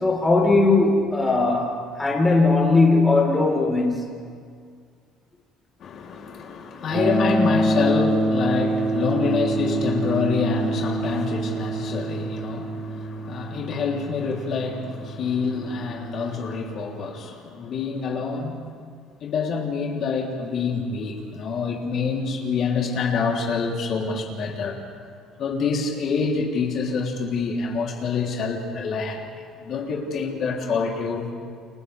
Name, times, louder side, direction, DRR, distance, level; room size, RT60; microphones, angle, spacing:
voice 1, 0.0-4.0, left 3 dB, 10° left, -2 dB, 4.1 m, -19 dB
voice 2, 5.8-18.7 19.2-24.8 25.4-29.2 29.6-31.3, left 5 dB, 45° left, -1 dB, 3.2 m, -26 dB
sound 1, 6.9-17.0, right 1 dB, 35° right, 4.1 m, -26 dB
30.0 x 28.5 x 3.5 m, 2.1 s
cardioid pair, 165°, 0 cm